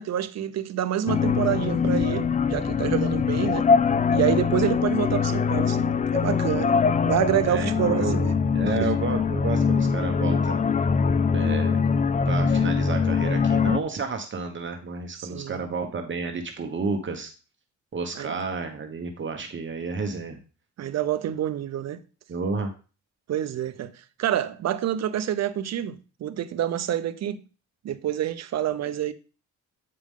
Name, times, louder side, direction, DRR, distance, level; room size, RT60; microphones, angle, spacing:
voice 1, 0.0-3.7 4.1-6.8 7.1-8.3 8.7-8.9 15.1-15.6 18.1-18.4 20.8-22.0 23.3-27.4 27.8-29.1, right 11 dB, 60° right, 0.8 m, -27 dB
sound 1, 1.1-13.8, left 5 dB, 25° left, 0.4 m, -23 dB
voice 2, 7.5-8.2 8.5-10.6 11.3-11.8 12.2-17.3 17.9-20.4 22.3-22.7, right 4 dB, 40° right, 1.2 m, -31 dB
8.6 x 4.9 x 3.7 m
cardioid pair, 90°, 30 cm